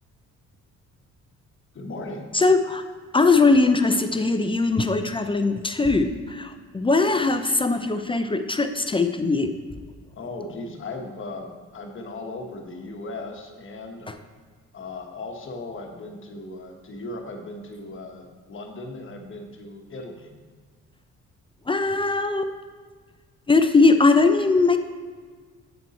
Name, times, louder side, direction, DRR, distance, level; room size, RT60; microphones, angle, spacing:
voice 1, 1.7-2.3 10.1-14.1 14.7-20.3, left 2 dB, 40° left, 3 dB, 1.1 m, -37 dB
voice 2, 2.3-2.8 3.1-9.6 14.1-14.2 21.7-22.5 23.5-24.8, left 3 dB, 20° left, 8 dB, 0.4 m, -20 dB
7.7 x 5.2 x 4.2 m, 1.5 s
cardioid pair, 90°, 30 cm